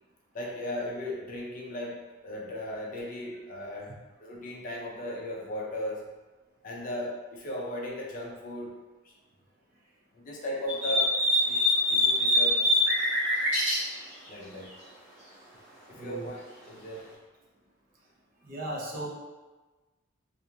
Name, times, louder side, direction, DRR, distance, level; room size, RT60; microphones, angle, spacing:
voice 1, 0.3-3.9 4.2-6.1 6.6-8.7 9.0-9.1 10.1-11.1 11.5-12.7 14.3-14.7 15.9-17.1, left 1 dB, 40° left, -3 dB, 0.4 m, -37 dB
sound 1, 10.7-13.8, left 1 dB, 65° right, 1.1 m, -24 dB
voice 2, 16.0-16.3 18.4-19.1, right 1 dB, 45° right, -4 dB, 0.5 m, -36 dB
2.4 x 2.3 x 2.8 m, 1.2 s
head